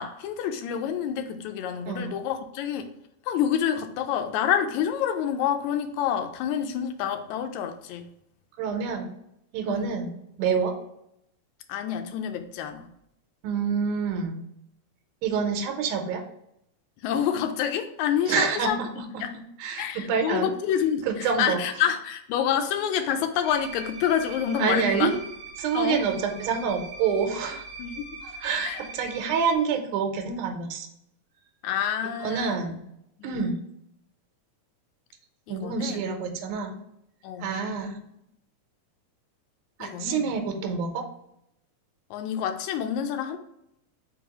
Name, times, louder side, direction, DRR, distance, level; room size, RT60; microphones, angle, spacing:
voice 1, 0.0-2.9 3.3-8.1 9.6-9.9 11.7-12.9 17.0-19.4 19.8-25.2 25.7-26.0 27.8-28.0 28.6-28.8 31.6-32.6 33.2-33.4 35.5-36.0 37.2-37.6 39.8-40.3 42.1-43.4, left 8 dB, 80° left, 6 dB, 1.8 m, -28 dB
voice 2, 8.6-9.1 9.5-10.7 13.4-14.4 15.2-16.2 18.3-18.9 19.1-20.5 21.1-21.6 24.6-25.1 25.6-27.6 28.2-30.9 32.2-32.8 33.2-33.7 35.5-36.8 37.4-38.0 39.8-41.1, right 6 dB, 85° right, 4 dB, 2.2 m, -27 dB
sound 1, 23.4-29.6, right 3 dB, 65° right, 2.0 m, -42 dB
4.7 x 3.8 x 2.9 m, 0.78 s
omnidirectional pair, 3.5 m